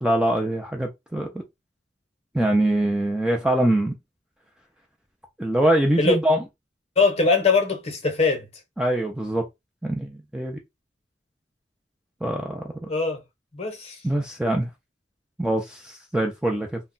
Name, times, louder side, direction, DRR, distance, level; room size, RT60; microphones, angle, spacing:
voice 1, 0.0-1.3 2.3-4.0 5.4-6.4 8.8-9.4 9.8-10.6 12.2-12.6 14.0-14.7 15.4-16.8, right 1 dB, 5° right, 0.4 m, -23 dB
voice 2, 7.0-8.5 12.9-13.2 13.5-14.0, left 4 dB, 35° left, 0.8 m, -21 dB
2.2 x 2.1 x 3.8 m
head